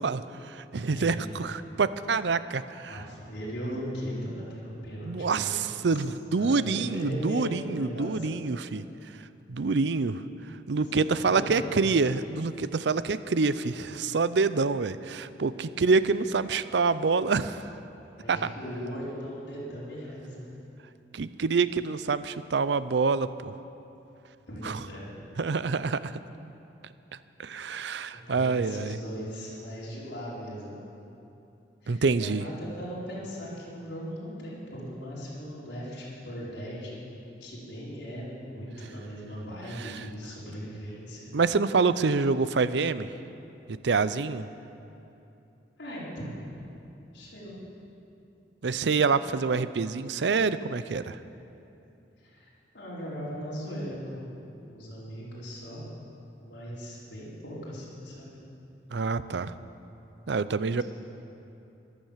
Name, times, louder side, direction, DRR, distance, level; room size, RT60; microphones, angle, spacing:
voice 1, 0.0-3.0 5.0-8.8 9.5-10.2 10.7-17.7 18.3-18.5 21.1-23.6 24.6-24.8 25.4-26.1 27.4-29.0 31.9-32.4 39.8-40.0 41.3-43.1 43.8-44.5 48.6-51.2 58.9-59.6 60.3-60.8, right 4 dB, 70° right, 14 dB, 0.5 m, -26 dB
voice 2, 0.8-1.2 2.9-5.9 6.4-8.4 10.8-11.8 18.2-20.5 24.5-25.2 28.1-30.9 31.8-37.0 37.4-41.3 45.8-46.6 47.1-47.6 52.2-52.5 52.7-54.4 54.7-55.8 56.4-58.3, equal, 75° left, -7 dB, 4.8 m, -38 dB
14.0 x 12.0 x 7.4 m, 2.8 s
head